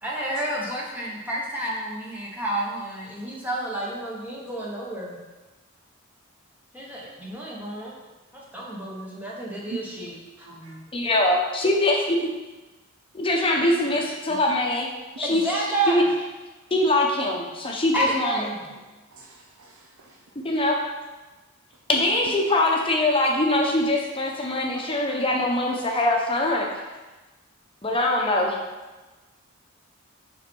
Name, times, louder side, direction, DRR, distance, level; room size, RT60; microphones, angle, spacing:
voice 1, 0.0-5.2 6.7-7.9 8.3-10.8 15.2-16.0 17.9-18.6, right 1 dB, 10° right, -5 dB, 1.2 m, -30 dB
voice 2, 10.9-12.3 13.1-14.9 15.2-15.4 15.9-16.0 16.7-18.4 20.4-20.8 21.9-26.7 27.8-28.6, left 1 dB, 25° left, 0 dB, 1.0 m, -23 dB
voice 3, 19.1-20.2 24.7-24.8, right 4 dB, 80° right, 1 dB, 0.7 m, -41 dB
5.8 x 5.6 x 4.6 m, 1.2 s
head